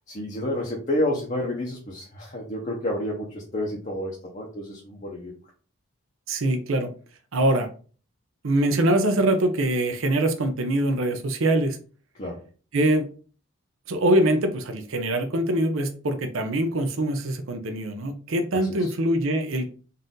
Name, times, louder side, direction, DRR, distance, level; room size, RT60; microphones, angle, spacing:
voice 1, 0.1-5.3 12.2-12.4 18.8-18.9, left 1 dB, 35° left, -3 dB, 0.8 m, -29 dB
voice 2, 6.3-6.9 7.3-7.7 8.4-11.8 12.7-13.1 13.9-19.7, right 1 dB, 80° right, 7 dB, 0.6 m, -23 dB
4.1 x 2.6 x 3.7 m, 0.39 s
head